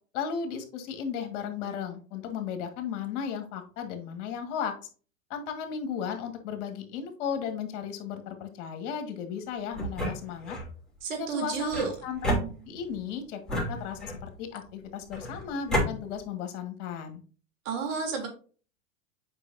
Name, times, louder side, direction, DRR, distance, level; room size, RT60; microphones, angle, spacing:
voice 1, 0.1-4.7 5.3-10.6 11.1-12.3 12.7-17.2, left 7 dB, 60° left, 5 dB, 1.9 m, -35 dB
sound 1, 9.7-10.7 11.7-13.0 13.5-14.4 15.1-15.9, right 1 dB, ahead, 3.0 m, -31 dB
voice 2, 11.0-11.9 17.6-18.3, right 5 dB, 65° right, 2 dB, 3.3 m, -31 dB
8.2 x 5.4 x 2.7 m, 0.38 s
hypercardioid pair, 115°, 42 cm